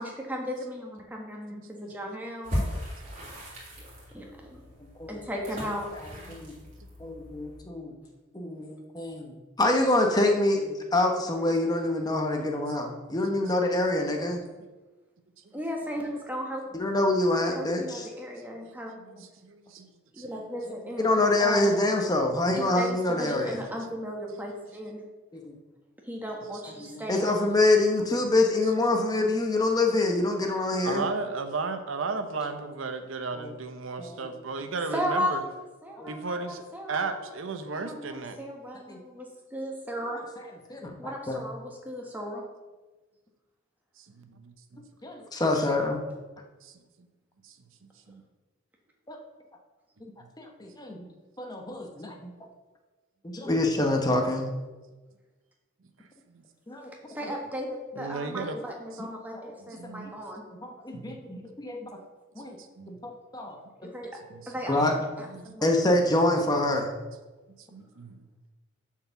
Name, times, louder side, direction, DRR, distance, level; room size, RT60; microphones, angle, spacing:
voice 1, 0.0-2.6 4.1-4.6 5.1-5.9 15.5-16.6 17.5-19.0 20.1-21.8 22.6-25.0 26.1-27.3 34.9-37.3 37.7-40.2 41.0-42.4 57.1-60.4 63.8-64.1 64.5-64.9 65.2-65.7, equal, 10° right, -1 dB, 1.3 m, -35 dB
voice 2, 1.5-1.9 6.5-6.6 19.0-19.1 19.4-19.9 20.2-20.3 30.8-35.4 36.1-38.4 44.2-44.8 46.6-46.7 47.4-47.5 48.1-48.2 53.6-53.7 56.3-56.4 58.0-58.6 59.8-60.1 60.9-61.2 62.4-62.9 64.3-64.5 65.4-65.5 67.7-68.2, right 4 dB, 75° right, 8 dB, 0.7 m, -35 dB
sound 1, 2.4-7.6, equal, 40° right, 3.0 m, -37 dB
voice 3, 5.9-6.5 7.0-8.0 8.3-14.4 16.7-18.1 21.0-23.6 25.3-25.5 26.8-31.0 33.3-33.5 34.0-34.4 36.0-36.1 38.9-39.0 40.0-40.2 40.7-41.4 45.0-46.0 49.1-49.2 50.0-50.1 50.4-51.1 51.4-52.3 53.2-54.4 56.7-56.9 57.3-57.4 58.5-58.6 59.3-59.5 60.0-60.1 60.6-62.0 62.3-62.6 62.9-63.6 64.7-65.0 65.6-66.9, left 2 dB, 20° left, 3 dB, 0.9 m, -26 dB
7.0 x 4.7 x 6.9 m, 1.2 s
head